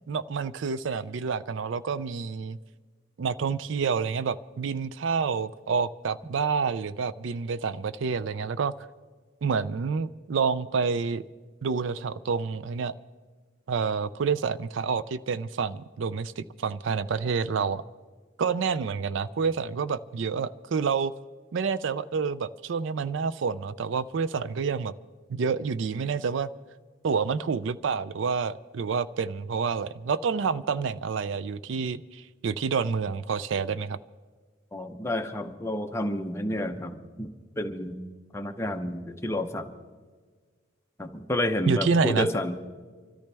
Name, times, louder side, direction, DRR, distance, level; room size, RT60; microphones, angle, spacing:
voice 1, 0.1-2.6 3.2-8.7 9.4-11.2 11.6-12.9 13.7-17.8 18.4-21.1 21.5-24.9 25.3-26.5 27.0-34.0 41.7-42.3, right 5 dB, 65° right, 16 dB, 0.4 m, -28 dB
voice 2, 34.7-38.0 38.3-39.7 41.0-42.6, left 1 dB, 15° left, 5 dB, 0.8 m, -30 dB
25.5 x 13.5 x 3.4 m, 1.5 s
head